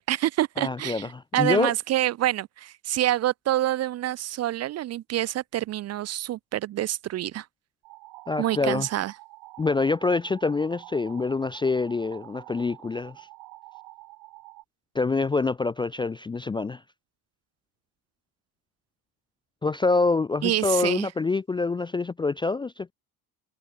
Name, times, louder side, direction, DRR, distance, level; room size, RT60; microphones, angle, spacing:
voice 1, 0.0-1.1 1.3-7.5 8.4-9.1 20.4-21.1, right 13 dB, 35° right, 0.5 m, -27 dB
voice 2, 0.6-1.7 8.3-8.9 9.6-13.3 14.9-16.8 19.6-22.9, left 3 dB, 10° left, 0.4 m, -26 dB
sound 1, 7.8-14.6, right 22 dB, 65° right, 1.4 m, -47 dB
cardioid pair, 125°, 42 cm